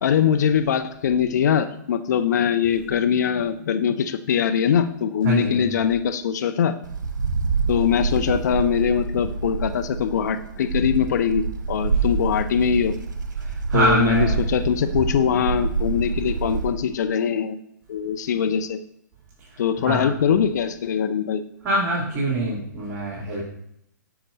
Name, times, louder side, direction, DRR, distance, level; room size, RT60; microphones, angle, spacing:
voice 1, 0.0-6.8 7.7-13.0 13.7-17.6 17.9-18.8 19.6-21.4, left 8 dB, 65° left, 10 dB, 0.6 m, -22 dB
voice 2, 5.2-5.7 13.4-14.4 19.8-20.1 21.6-23.4, right 2 dB, 25° right, -7 dB, 3.0 m, -24 dB
Wind, 6.8-16.8, right 4 dB, 70° right, 1.1 m, -27 dB
10.5 x 7.1 x 2.7 m, 0.76 s
hypercardioid pair, 120°, 10 cm